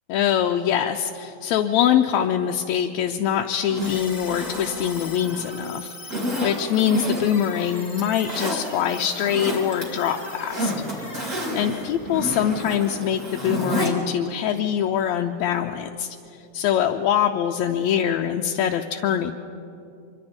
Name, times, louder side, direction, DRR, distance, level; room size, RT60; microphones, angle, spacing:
voice 1, 0.1-10.7 11.3-16.2 16.5-19.3, left 9 dB, 80° left, 3 dB, 1.9 m, -24 dB
Zipper (clothing), 3.6-5.5 6.1-7.5 7.9-8.6 9.1-9.8 10.2-13.9 14.3-14.4, equal, 25° right, 3.1 m, -29 dB
sound 1, 3.8-13.0, left 2 dB, 15° left, 1.9 m, -39 dB
25.5 x 23.5 x 4.4 m, 2.7 s
omnidirectional pair, 3.4 m